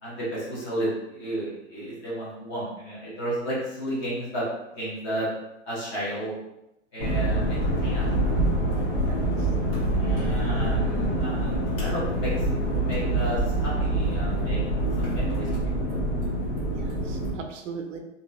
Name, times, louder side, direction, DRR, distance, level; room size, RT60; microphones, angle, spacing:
voice 1, 0.0-4.5 4.7-5.3 5.7-6.3 6.9-8.1 9.9-14.6 15.0-15.5, right 1 dB, 25° left, -6 dB, 0.8 m, -32 dB
sound 1, 7.0-17.3, right 1 dB, 50° left, 1.0 m, -25 dB
voice 2, 9.0-9.5 10.1-10.4 16.7-18.0, right 5 dB, 80° right, 4 dB, 0.6 m, -39 dB
2.7 x 2.5 x 2.3 m, 0.89 s
hypercardioid pair, 160°, 37 cm